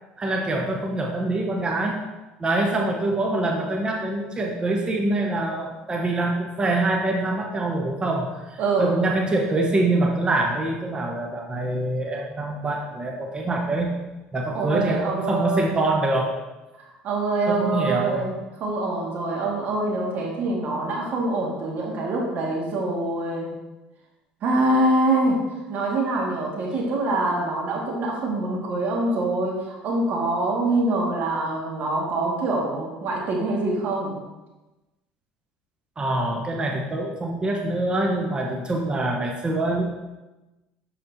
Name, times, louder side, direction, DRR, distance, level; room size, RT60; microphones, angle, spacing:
voice 1, 0.2-2.0 2.4-14.0 14.3-16.3 17.5-18.3 36.0-39.8, right 2 dB, 25° right, 0 dB, 0.9 m, -25 dB
voice 2, 8.6-8.9 14.5-15.8 16.8-23.5 24.4-25.4 25.7-34.1, right 2 dB, 60° right, -2 dB, 1.8 m, -25 dB
9.0 x 4.2 x 2.7 m, 1.1 s
supercardioid pair, 95°, 4 cm